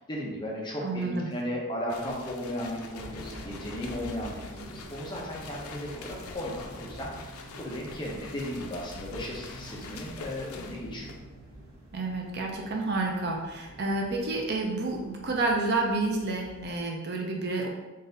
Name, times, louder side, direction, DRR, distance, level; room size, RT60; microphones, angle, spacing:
voice 1, 0.0-11.2, equal, 20° left, -3 dB, 0.7 m, -36 dB
voice 2, 0.8-1.3 11.9-17.7, right 2 dB, 50° right, 1 dB, 0.6 m, -29 dB
sound 1, 1.9-11.3, left 4 dB, 80° left, 0.5 m, -45 dB
sound 2, 3.0-16.8, right 1 dB, 85° right, 1.2 m, -47 dB
3.9 x 2.6 x 3.9 m, 1.1 s
head